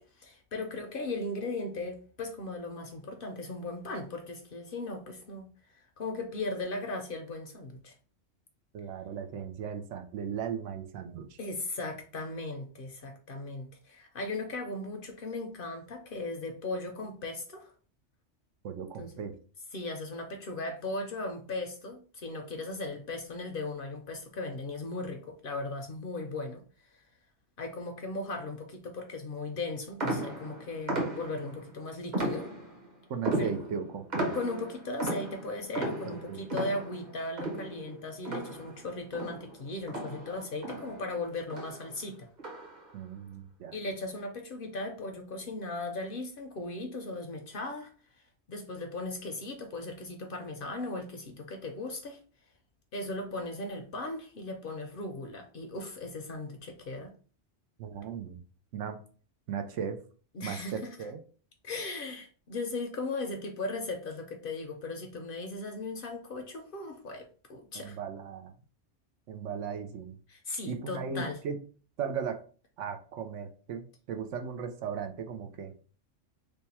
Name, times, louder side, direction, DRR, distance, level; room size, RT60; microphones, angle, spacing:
voice 1, 0.0-5.5 5.7-7.9 11.4-17.7 19.0-19.1 19.7-26.6 27.6-32.5 33.4-33.5 34.3-42.3 43.7-47.9 48.5-52.2 52.9-57.1 60.3-60.9 61.6-68.0 70.3-71.4, left 2 dB, 55° left, 5 dB, 0.7 m, -37 dB
voice 2, 8.7-11.4 18.6-19.3 33.1-34.3 36.0-36.4 42.9-43.7 57.8-58.4 58.7-59.0 59.5-60.0 60.4-61.2 67.7-68.5 69.3-70.2 70.7-71.6 72.0-72.4 72.8-75.7, right 7 dB, 75° right, 7 dB, 0.9 m, -37 dB
sound 1, 30.0-31.6 32.1-32.9 33.2-38.9 39.1-41.2 41.5-41.9 42.4-42.9, right 1 dB, 40° right, 1.0 m, -35 dB
3.3 x 2.2 x 4.1 m, 0.40 s
omnidirectional pair, 1.3 m